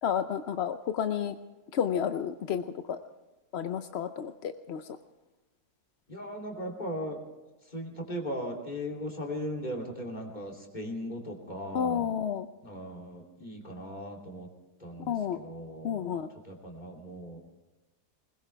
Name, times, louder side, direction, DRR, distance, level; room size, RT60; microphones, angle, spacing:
voice 1, 0.0-1.4 1.7-3.0 3.5-5.0 11.7-12.5 15.1-15.4 15.8-16.3, left 8 dB, 60° left, 9 dB, 0.7 m, -31 dB
voice 2, 6.1-7.2 7.6-12.2 12.6-14.5 14.8-17.4, equal, 25° left, -1 dB, 3.0 m, -38 dB
20.5 x 20.5 x 3.4 m, 1.1 s
omnidirectional pair, 1.7 m